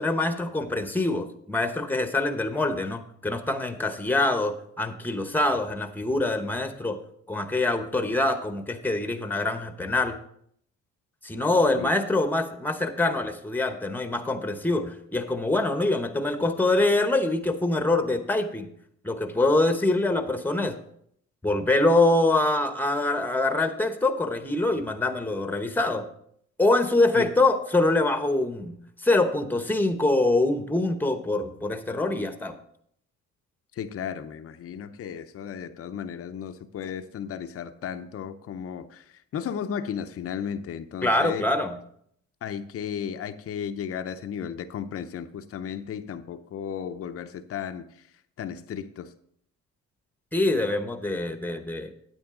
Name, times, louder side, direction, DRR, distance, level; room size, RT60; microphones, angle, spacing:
voice 1, 0.0-7.0 7.3-10.2 11.2-18.7 19.0-20.7 21.4-26.1 26.6-32.6 41.0-41.8 50.3-51.9, left 2 dB, 5° left, 1.0 m, -24 dB
voice 2, 33.7-41.4 42.4-48.1 48.4-49.1, left 8 dB, 50° left, 0.6 m, -34 dB
9.2 x 8.8 x 3.7 m
cardioid pair, 90°, 30 cm